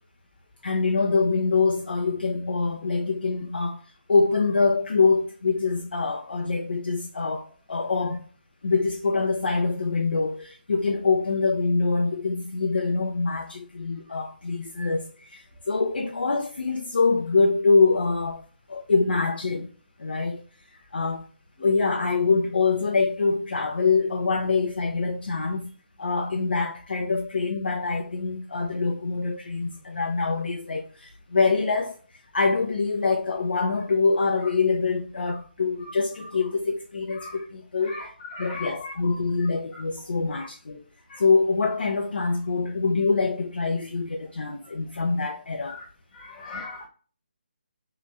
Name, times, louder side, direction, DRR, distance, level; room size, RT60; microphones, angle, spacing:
voice 1, 0.6-8.2 8.6-18.4 18.7-19.7 20.0-20.4 20.9-21.3 21.6-25.7 26.0-32.0 32.3-38.1 38.4-40.8 41.2-45.8, left 4 dB, 70° left, 0.5 m, -24 dB
voice 2, 37.9-38.9 40.4-40.5 41.1-41.2 46.1-46.9, left 3 dB, 15° left, 0.5 m, -38 dB
2.9 x 2.4 x 2.3 m
figure-of-eight pair, 150°, 5 cm